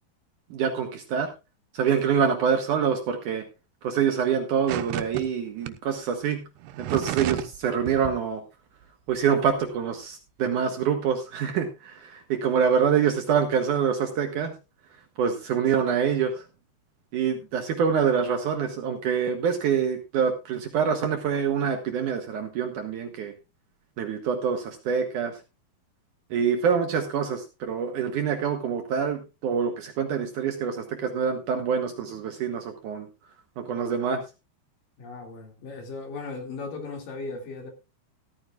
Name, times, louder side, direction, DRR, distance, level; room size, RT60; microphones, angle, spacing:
voice 1, 0.5-1.3 1.7-3.4 3.8-6.4 6.8-8.4 9.1-14.5 15.2-16.5 17.1-23.3 24.0-25.4 26.3-33.1 33.6-34.2, right 7 dB, 65° right, 2.2 m, -26 dB
sound 1, 4.7-5.2 5.6-5.7 6.6-7.6 7.9-8.1, right 12 dB, 90° right, 2.9 m, -31 dB
voice 2, 35.0-37.7, left 3 dB, 60° left, 3.9 m, -37 dB
14.5 x 13.5 x 2.4 m
omnidirectional pair, 4.6 m